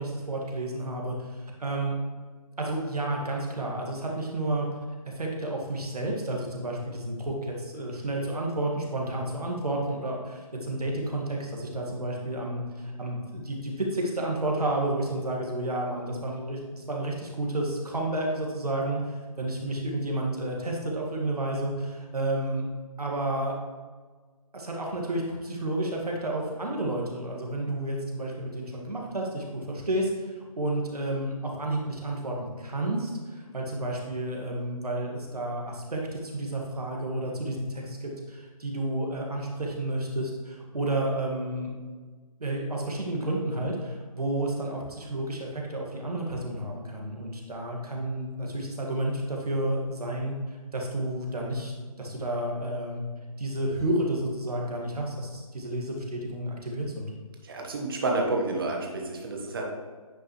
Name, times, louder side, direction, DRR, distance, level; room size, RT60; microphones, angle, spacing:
voice 1, 0.0-2.0 2.6-4.7 5.1-22.6 23.0-23.6 24.5-41.7 42.4-50.4 50.7-53.0 53.4-57.1, right 1 dB, 80° right, -1 dB, 2.0 m, -31 dB
voice 2, 57.4-59.7, right 2 dB, 35° right, 1 dB, 1.3 m, -29 dB
9.3 x 5.1 x 3.2 m, 1.5 s
figure-of-eight pair, 155°, 19 cm